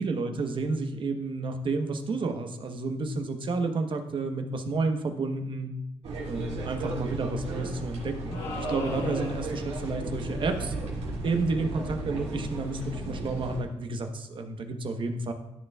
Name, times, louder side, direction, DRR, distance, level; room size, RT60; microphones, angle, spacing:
voice 1, 0.0-5.7 6.3-10.7 11.2-15.3, right 3 dB, 50° right, 5 dB, 1.0 m, -31 dB
sound 1, 6.0-13.6, right 2 dB, 80° right, 2.4 m, -35 dB
sound 2, 8.3-9.7, left 3 dB, 70° left, 1.5 m, -37 dB
13.5 x 6.7 x 2.3 m, 0.91 s
cardioid pair, 105°, 11 cm